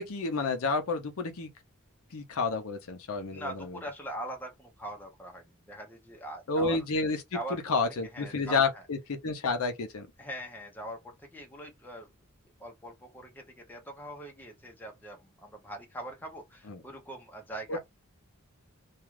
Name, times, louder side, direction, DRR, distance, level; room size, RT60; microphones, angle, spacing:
voice 1, 0.0-1.5 2.1-3.8 6.5-7.2 7.5-9.0 9.2-10.1 16.7-16.8 17.7-17.8, left 4 dB, 70° left, 0.6 m, -30 dB
voice 2, 3.3-6.8 7.3-7.8 8.1-8.8 10.2-12.1 12.6-17.8, right 1 dB, 10° left, 0.6 m, -42 dB
2.4 x 2.3 x 3.1 m
head